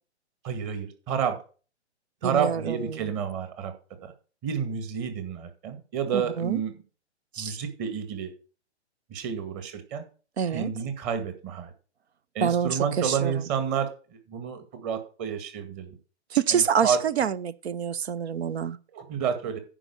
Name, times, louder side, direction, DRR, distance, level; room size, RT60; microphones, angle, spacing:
voice 1, 0.4-1.4 2.2-3.7 4.0-4.1 4.4-6.8 7.4-8.3 9.1-10.0 10.5-11.7 12.3-13.9 14.3-16.0 16.5-17.0 18.9-19.6, right 7 dB, 30° right, 2.0 m, -30 dB
voice 2, 2.2-3.0 6.1-6.6 7.3-7.6 10.4-10.7 12.4-13.3 16.3-18.8, right 7 dB, 65° right, 0.8 m, -27 dB
9.9 x 5.0 x 6.8 m
figure-of-eight pair, 125°, 34 cm